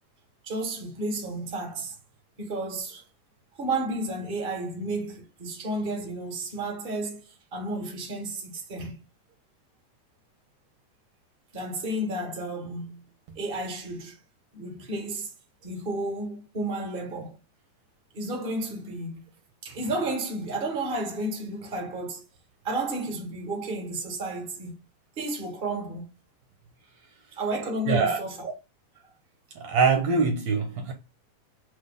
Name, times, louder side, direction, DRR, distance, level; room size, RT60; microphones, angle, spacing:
voice 1, 0.4-2.0 2.4-3.0 3.6-7.2 7.5-9.0 11.5-13.0 13.4-14.2 14.5-15.3 15.6-17.4 18.1-19.2 19.6-22.2 22.6-24.7 25.2-26.1 27.4-28.5, right 2 dB, 20° right, 1.6 m, -32 dB
voice 2, 27.9-28.2 29.6-30.9, right 5 dB, 70° right, 2.0 m, -23 dB
6.3 x 3.5 x 5.3 m
omnidirectional pair, 3.6 m